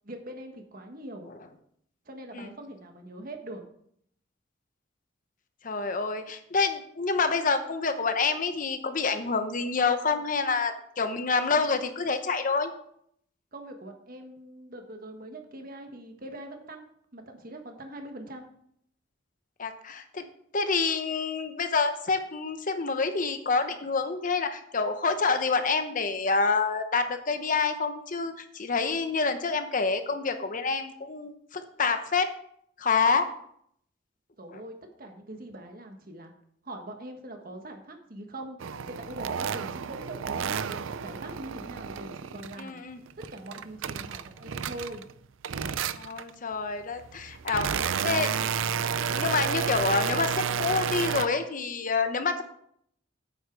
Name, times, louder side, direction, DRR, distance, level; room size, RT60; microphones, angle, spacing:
voice 1, 0.0-1.3 2.0-3.7 13.5-18.5 34.4-36.3 36.6-38.6 38.9-42.8 43.3-45.1, right 1 dB, 50° right, 4 dB, 1.5 m, -42 dB
voice 2, 5.6-12.7 19.6-20.2 20.5-32.3 32.8-33.3 34.5-34.6 42.6-43.0 46.0-47.7 48.0-48.3 49.1-52.4, left 4 dB, 45° left, 8 dB, 0.9 m, -27 dB
sound 1, 38.6-42.7 43.1-45.1 45.4-46.3 47.0-51.3, right 7 dB, 85° right, 0.5 m, -31 dB
9.0 x 8.1 x 4.7 m, 0.69 s
head